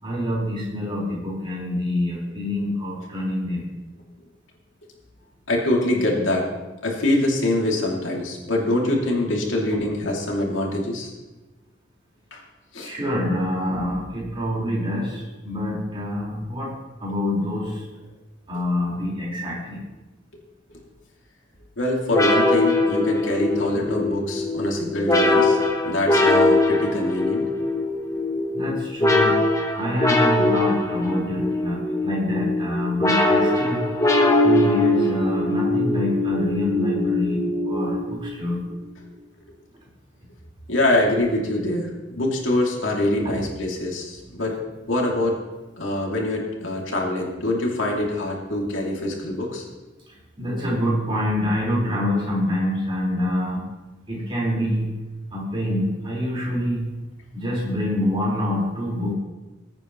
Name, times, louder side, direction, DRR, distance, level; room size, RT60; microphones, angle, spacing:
voice 1, 0.0-3.6 12.8-16.7 17.0-17.8 18.5-19.8 23.7-23.9 28.5-29.4 29.8-33.9 34.4-37.4 37.7-38.6 43.2-43.3 44.4-44.5 50.4-53.6 54.1-54.9 55.3-56.9 57.3-59.1, left 1 dB, 30° right, -5 dB, 4.7 m, -26 dB
voice 2, 5.5-6.5 6.8-11.1 12.3-12.4 12.7-12.9 21.8-25.6 25.8-27.4 40.7-41.9 42.2-44.6 44.9-45.4 45.8-49.7, left 1 dB, 85° left, -1 dB, 2.7 m, -24 dB
sound 1, 22.1-38.3, left 2 dB, 15° left, 1.3 m, -21 dB
20.5 x 8.9 x 3.1 m, 1.1 s
head